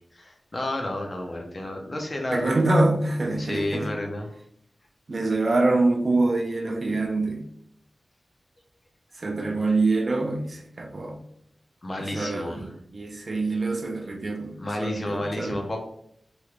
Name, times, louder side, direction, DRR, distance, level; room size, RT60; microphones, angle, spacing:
voice 1, 0.1-2.6 3.4-4.4 11.8-12.7 14.6-15.8, left 1 dB, 35° left, 0.6 m, -31 dB
voice 2, 2.3-3.9 5.1-7.5 9.2-11.2 12.0-15.6, right 2 dB, 50° right, 0.5 m, -25 dB
3.1 x 3.0 x 2.4 m
wide cardioid pair, 100°, 0 cm